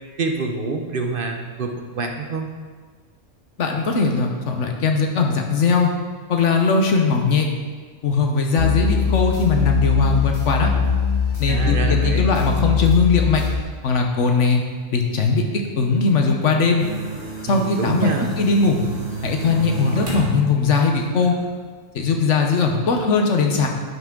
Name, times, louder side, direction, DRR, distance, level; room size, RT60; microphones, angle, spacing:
voice 1, 0.2-2.5 11.5-12.3 17.5-18.3, right 4 dB, 50° right, 3 dB, 0.9 m, -26 dB
voice 2, 3.6-5.9 6.3-7.5 8.0-10.7 11.4-13.4 13.8-14.6 14.9-16.9 17.5-18.1 18.4-18.8 19.2-21.3 21.9-23.7, left 4 dB, 70° left, 3 dB, 1.3 m, -19 dB
sound 1, 8.6-13.6, left 6 dB, 50° left, 1.8 m, -21 dB
sound 2, 16.8-20.3 20.7-21.4, right 3 dB, 80° right, 2.2 m, -32 dB
11.0 x 6.0 x 3.8 m, 1.5 s
omnidirectional pair, 1.3 m